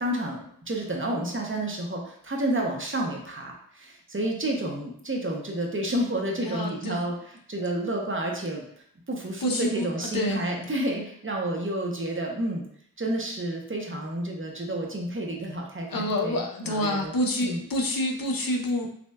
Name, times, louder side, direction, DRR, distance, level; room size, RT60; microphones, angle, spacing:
voice 1, 0.0-8.6 9.1-12.6 13.0-17.1 17.4-17.6, right 1 dB, 35° right, 0 dB, 0.7 m, -30 dB
voice 2, 6.4-7.0 9.4-10.5 15.9-18.9, left 1 dB, 75° left, 1 dB, 0.7 m, -28 dB
6.0 x 2.2 x 2.2 m, 0.65 s
wide cardioid pair, 70°, 35 cm